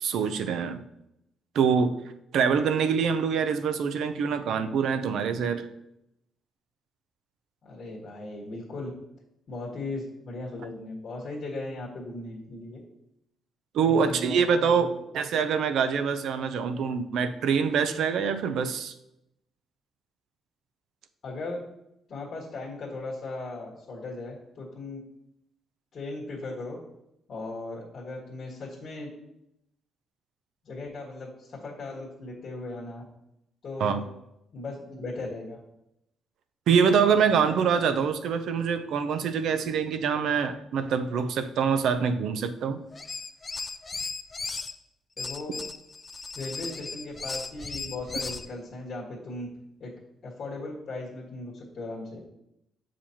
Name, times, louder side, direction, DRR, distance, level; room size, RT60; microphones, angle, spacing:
voice 1, 0.0-0.8 1.5-2.0 2.3-5.7 13.7-14.9 15.1-18.9 33.8-34.0 36.7-42.8, right 6 dB, 75° right, 9 dB, 0.5 m, -25 dB
voice 2, 7.6-8.9 9.5-12.8 13.8-14.9 21.2-21.6 22.1-25.0 25.9-26.8 27.3-29.1 30.6-33.0 33.6-34.1 34.5-35.6 45.2-45.6 46.3-49.5 49.8-49.9 50.2-52.2, left 2 dB, 55° left, -6 dB, 1.5 m, -37 dB
sound 1, 42.9-44.7 45.2-48.5, left 4 dB, 30° left, 0.4 m, -36 dB
7.1 x 5.0 x 2.9 m, 0.84 s
cardioid pair, 90°, 0 cm